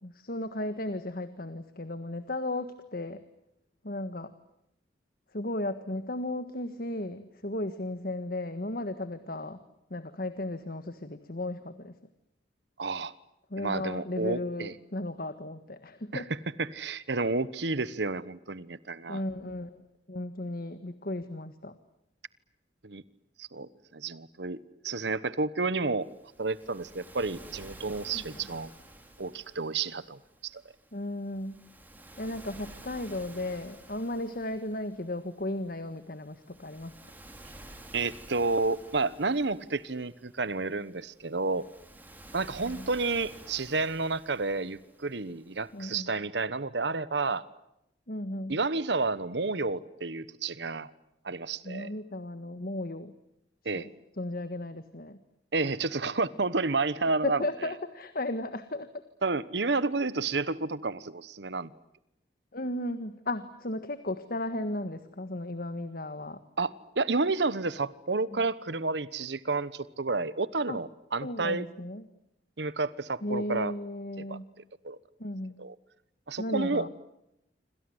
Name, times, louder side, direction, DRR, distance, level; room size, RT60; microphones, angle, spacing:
voice 1, 0.0-3.2 3.8-4.3 5.3-9.6 9.9-11.9 13.5-16.3 19.1-21.7 28.1-28.5 30.9-31.6 32.2-36.9 42.6-42.9 45.7-46.1 48.1-48.6 51.6-53.1 53.7-53.9 54.2-55.2 57.2-59.0 62.5-66.4 68.3-68.4 70.7-70.8 71.2-72.0 73.2-74.5 75.2-75.6 76.4-76.9, left 1 dB, 55° left, 11 dB, 1.6 m, -35 dB
voice 2, 12.8-13.1 13.6-14.7 16.1-16.2 16.6-19.2 22.8-23.0 23.4-24.6 24.8-26.1 26.4-28.7 29.2-30.6 37.9-41.7 42.3-47.5 48.5-50.9 51.2-51.9 53.6-53.9 55.5-57.5 59.2-61.7 66.6-71.7 72.6-73.7 74.2-74.4 74.8-75.0 75.6-75.7 76.3-76.9, right 3 dB, 75° right, 17 dB, 1.1 m, -30 dB
Waves surf, 26.0-46.0, right 1 dB, 10° right, 4.7 m, -52 dB
27.5 x 26.5 x 7.9 m, 0.85 s
head